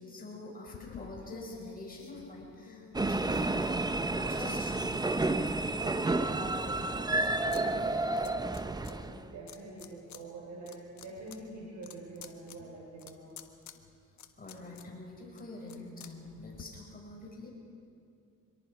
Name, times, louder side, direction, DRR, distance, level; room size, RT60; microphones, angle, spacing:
voice 1, 0.0-3.6 4.1-4.9 14.4-17.5, left 2 dB, 30° left, -3 dB, 6.2 m, -46 dB
sound 1, 0.7-5.7 6.2-7.6 7.9-8.9 9.5-10.2 10.6-16.6, left 9 dB, 65° left, 1.5 m, -51 dB
sound 2, 2.9-9.3, right 2 dB, 15° right, 0.7 m, -31 dB
voice 2, 5.8-13.4, right 2 dB, 70° right, -3 dB, 4.9 m, -45 dB
25.0 x 23.0 x 5.0 m, 2.4 s
cardioid pair, 90°, 31 cm